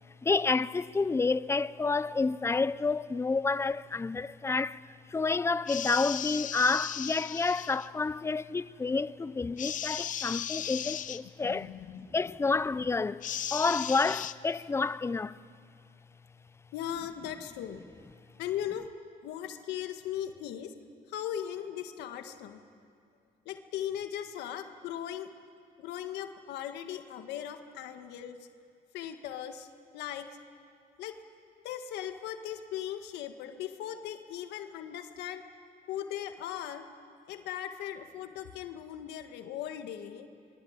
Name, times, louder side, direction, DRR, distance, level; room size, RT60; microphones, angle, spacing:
voice 1, 0.2-4.8 5.1-13.2 13.5-15.4, left 4 dB, 15° left, 0.6 m, -29 dB
sound 1, 5.7-7.9 9.6-11.2 13.2-14.3, left 10 dB, 50° left, 0.9 m, -36 dB
voice 2, 11.5-12.1 16.7-17.8 18.4-18.9 19.2-20.7 21.1-22.6 23.5-25.3 25.8-28.4 28.9-29.7 29.9-30.3 31.0-31.2 31.6-35.4 35.9-36.9 37.3-40.3, left 10 dB, 85° left, 1.8 m, -38 dB
26.5 x 22.5 x 9.0 m
cardioid pair, 110°, 17 cm